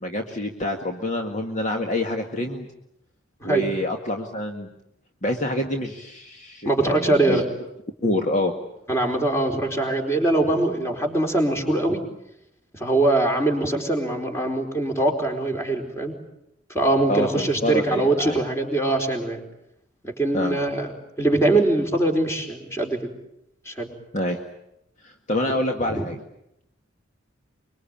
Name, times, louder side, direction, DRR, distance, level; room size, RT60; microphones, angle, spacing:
voice 1, 0.0-2.7 3.4-4.7 5.2-7.4 8.0-8.5 17.1-18.4 20.3-20.6 24.1-24.4 25.0-26.2, left 1 dB, 40° left, 3 dB, 1.9 m, -26 dB
voice 2, 6.6-7.5 8.9-12.0 12.7-16.1 16.7-19.4 20.0-20.9 21.2-23.1 23.7-23.9 25.5-25.6 25.9-26.0, right 2 dB, 15° left, 3 dB, 4.4 m, -22 dB
25.0 x 23.5 x 8.9 m, 0.79 s
head